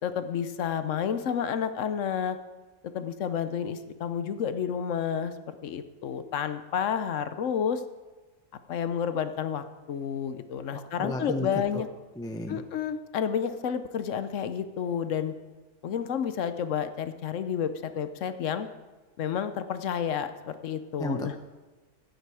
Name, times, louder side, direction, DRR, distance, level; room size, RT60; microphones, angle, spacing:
voice 1, 0.0-2.4 2.9-7.8 8.7-11.9 12.5-15.3 15.8-18.7 19.2-21.4, left 8 dB, 65° left, 11 dB, 1.0 m, -30 dB
voice 2, 10.7-11.5 11.7-11.8 12.2-12.6 21.0-21.3, left 1 dB, 5° left, 5 dB, 0.4 m, -33 dB
14.0 x 9.2 x 4.8 m, 1.2 s
omnidirectional pair, 1.6 m